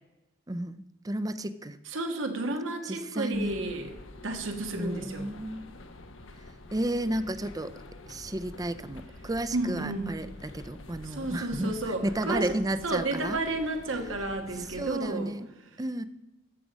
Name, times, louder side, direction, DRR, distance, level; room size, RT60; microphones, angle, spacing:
voice 1, 0.5-1.8 2.8-3.5 4.7-5.6 6.7-7.7 8.1-13.4 14.8-15.5 15.8-16.0, right 1 dB, 20° right, 13 dB, 0.5 m, -32 dB
voice 2, 1.8-3.9 4.2-5.3 9.5-10.1 11.0-12.6 12.8-15.3, right 2 dB, 90° right, 5 dB, 1.5 m, -32 dB
sound 1, 3.3-15.0, left 2 dB, 85° left, 1.1 m, -47 dB
12.5 x 7.4 x 5.2 m, 1.0 s
head